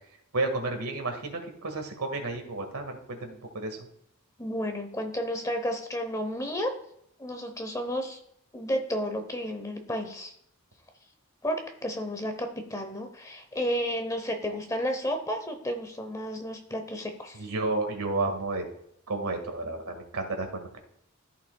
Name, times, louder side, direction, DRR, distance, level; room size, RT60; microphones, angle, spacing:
voice 1, 0.3-3.9 17.3-18.6 19.1-20.8, right 2 dB, 85° right, 4 dB, 1.8 m, -31 dB
voice 2, 4.4-6.7 7.2-8.2 8.5-10.3 11.4-17.5, equal, 15° left, 5 dB, 0.9 m, -32 dB
14.0 x 5.6 x 2.3 m, 0.73 s
head